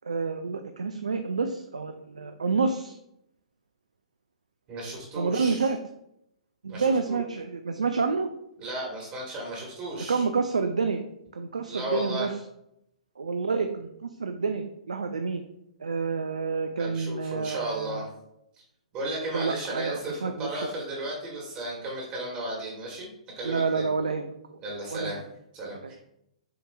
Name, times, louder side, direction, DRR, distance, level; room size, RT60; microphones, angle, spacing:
voice 1, 0.0-3.0 5.1-5.8 6.6-8.3 10.1-11.0 11.3-12.4 13.2-15.4 15.8-18.0 19.3-20.5 23.4-24.3 24.9-25.2, right 4 dB, 80° right, 7 dB, 0.3 m, -28 dB
voice 2, 4.7-5.7 6.7-7.2 8.6-10.2 11.7-12.3 16.8-18.1 18.9-23.8 24.6-25.2 25.5-26.0, right 1 dB, 30° right, -2 dB, 1.4 m, -34 dB
6.2 x 2.9 x 2.2 m, 0.79 s
figure-of-eight pair, 115°, 4 cm